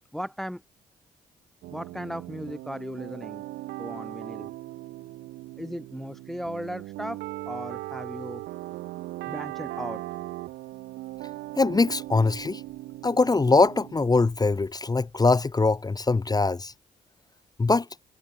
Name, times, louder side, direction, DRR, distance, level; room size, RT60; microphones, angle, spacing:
voice 1, 0.1-0.6 1.7-3.4 3.8-4.5 5.6-8.4 9.3-10.0, equal, ahead, 1.2 m, -36 dB
sound 1, 1.6-14.3, right 17 dB, 85° right, 2.5 m, -39 dB
voice 2, 11.6-12.6 13.0-16.7 17.6-17.9, left 3 dB, 25° left, 0.7 m, -22 dB
supercardioid pair, 55°, 17 cm